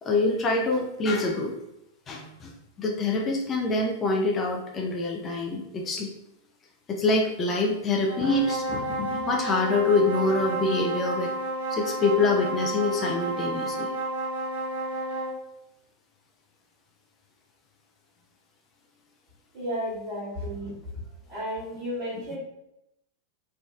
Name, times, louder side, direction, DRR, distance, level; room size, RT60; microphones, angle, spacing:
voice 1, 0.0-1.5 2.1-6.1 6.9-11.3 11.7-13.9, left 3 dB, 25° left, 1 dB, 0.4 m, -26 dB
sound 1, 8.0-15.4, right 2 dB, 75° right, 0.8 m, -31 dB
voice 2, 19.5-20.7 21.3-22.4, equal, 40° right, -12 dB, 1.5 m, -33 dB
3.4 x 2.4 x 2.2 m, 0.84 s
figure-of-eight pair, 90°, 0 cm